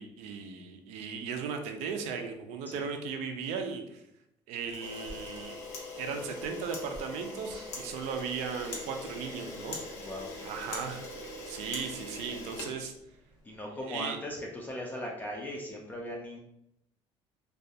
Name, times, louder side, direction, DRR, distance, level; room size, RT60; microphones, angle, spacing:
voice 1, 0.0-4.0 4.5-5.6 6.0-9.8 10.4-11.0 11.5-12.9 13.9-14.2, right 6 dB, 90° right, 5 dB, 0.4 m, -37 dB
Camera, 4.7-13.4, left 2 dB, 90° left, 0.8 m, -42 dB
sound 1, 5.4-5.7 6.0-6.6 7.4-7.7, right 1 dB, 40° right, 0.6 m, -50 dB
voice 2, 10.0-10.3 13.4-16.4, left 1 dB, 15° left, -1 dB, 0.3 m, -38 dB
2.3 x 2.2 x 2.7 m, 0.78 s
cardioid pair, 150°, 11 cm